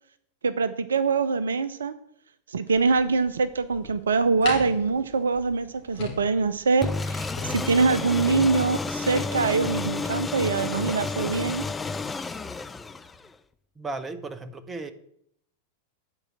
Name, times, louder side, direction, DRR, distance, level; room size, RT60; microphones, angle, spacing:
voice 1, 0.4-1.9 2.5-11.6, right 4 dB, 70° right, 14 dB, 0.4 m, -24 dB
sound 1, 2.7-9.2, left 5 dB, 40° left, 2.5 m, -40 dB
sound 2, 6.8-13.3, left 3 dB, 15° left, 0.4 m, -31 dB
voice 2, 13.8-14.9, right 3 dB, 15° right, 10 dB, 0.8 m, -35 dB
8.9 x 4.7 x 7.3 m, 0.71 s
figure-of-eight pair, 90°, 0 cm